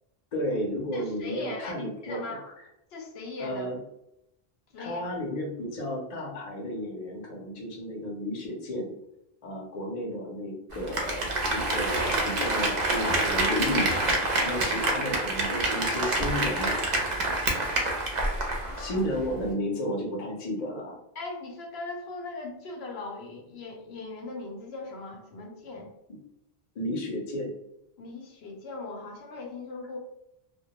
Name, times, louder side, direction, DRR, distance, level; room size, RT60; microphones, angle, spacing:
voice 1, 0.3-2.2 3.4-3.8 4.8-8.9 9.4-16.7 18.8-21.0 26.8-27.5, left 1 dB, 45° left, -1 dB, 0.6 m, -32 dB
voice 2, 0.9-2.4 2.9-3.7 4.7-5.0 18.6-19.1 21.2-25.9 28.0-30.0, left 3 dB, 85° left, 0 dB, 0.8 m, -39 dB
Applause, 10.7-18.9 19.2-19.3, right 2 dB, 55° right, 0.6 m, -27 dB
2.2 x 2.1 x 2.8 m, 0.82 s
omnidirectional pair, 1.0 m